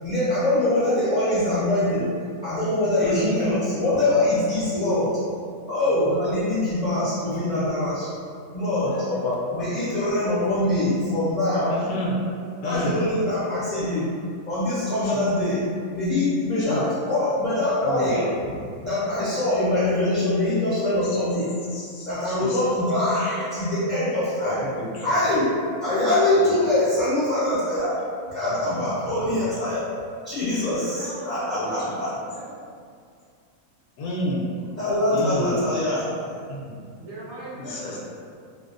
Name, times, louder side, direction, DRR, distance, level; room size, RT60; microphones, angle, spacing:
voice 1, 0.0-2.1 2.4-5.1 5.7-8.1 8.5-8.9 9.5-11.8 12.6-14.1 14.5-15.6 15.9-21.5 22.1-24.7 25.0-25.5 25.8-28.0 28.3-29.9 30.2-32.1 34.8-36.1, left 1 dB, 60° left, -12 dB, 0.5 m, -23 dB
voice 2, 3.0-3.5 9.0-9.7 10.6-10.7 11.7-12.1 12.6-13.0 15.0-15.2 16.7-16.8 17.8-18.1 21.1-21.2 21.7-22.6 24.4-25.2 28.4-28.8 31.5-32.0 34.0-34.4 35.1-35.6 36.5-36.8 37.6-38.0, left 1 dB, 80° left, -4 dB, 1.0 m, -30 dB
voice 3, 4.7-5.1 11.5-12.3 30.4-32.0 32.2-32.4 37.0-38.0, right 1 dB, 60° right, -8 dB, 0.8 m, -39 dB
2.6 x 2.0 x 2.4 m, 2.3 s
omnidirectional pair, 1.5 m